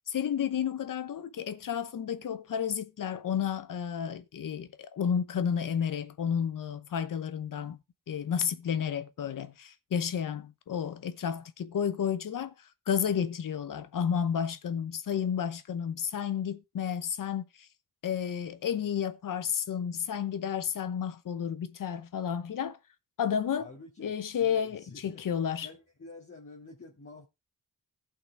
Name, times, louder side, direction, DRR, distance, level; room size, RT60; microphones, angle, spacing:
voice 1, 0.1-7.8 8.1-12.5 12.9-17.4 18.0-22.8 23.2-23.7 24.0-25.7, left 8 dB, 75° left, 0.9 m, -31 dB
voice 2, 23.6-25.2 25.6-27.3, left 3 dB, 40° left, 2.6 m, -49 dB
15.5 x 5.8 x 3.4 m
cardioid pair, 65°, 33 cm